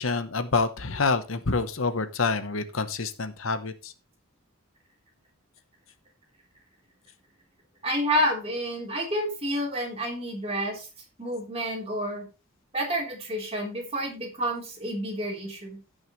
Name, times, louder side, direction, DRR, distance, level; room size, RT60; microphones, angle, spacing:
voice 1, 0.0-3.9, left 4 dB, 75° left, 11 dB, 1.0 m, -27 dB
voice 2, 7.8-10.9 11.2-12.2 12.7-15.8, equal, 30° right, -1 dB, 3.7 m, -29 dB
15.5 x 6.4 x 3.2 m, 0.30 s
head